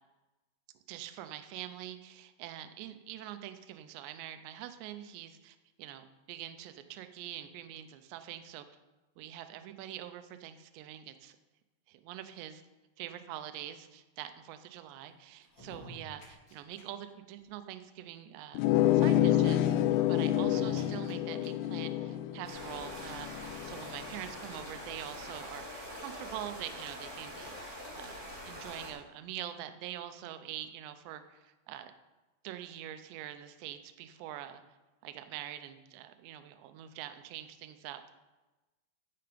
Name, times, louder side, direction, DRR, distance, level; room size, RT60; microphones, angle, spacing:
voice 1, 0.9-8.7 9.2-11.4 11.9-12.6 13.0-18.6 18.9-19.8 20.1-28.1 28.4-31.9 32.4-34.6 35.0-38.0, right 12 dB, 80° right, 9 dB, 2.6 m, -44 dB
sound 1, 15.4-16.8 17.1-17.2 17.4-17.5 18.5-18.6 19.5-21.8 22.4-22.5 22.8-22.9 23.3-24.3 24.6-24.7 25.0-25.2 26.0-26.1, left 1 dB, 25° left, 3.7 m, -49 dB
sound 2, 18.5-23.8, left 12 dB, 90° left, 3.3 m, -28 dB
sound 3, 22.4-28.9, equal, 20° right, 2.2 m, -44 dB
14.5 x 6.9 x 5.2 m, 1.1 s
omnidirectional pair, 5.8 m